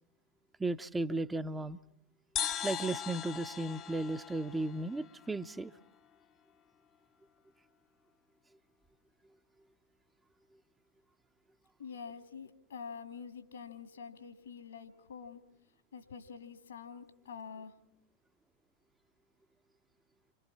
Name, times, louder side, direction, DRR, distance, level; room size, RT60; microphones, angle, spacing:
voice 1, 0.6-1.8 2.6-5.7, right 2 dB, 10° right, 9 dB, 0.7 m, -35 dB
sound 1, 2.4-5.9, left 9 dB, 30° left, 0.9 m, -40 dB
voice 2, 11.8-15.4 15.9-17.7, left 6 dB, 70° left, 7 dB, 2.5 m, -46 dB
29.0 x 25.5 x 4.2 m, 0.75 s
figure-of-eight pair, 90°, 0 cm